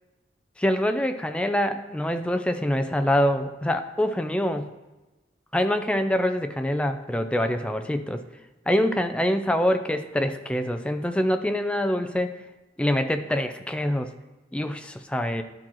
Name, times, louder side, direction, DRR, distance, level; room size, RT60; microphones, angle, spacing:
voice 1, 0.6-4.7 5.5-8.2 8.7-12.4 12.8-14.1 14.5-15.4, equal, 5° left, 8 dB, 0.3 m, -25 dB
12.0 x 4.3 x 3.0 m, 1.1 s
head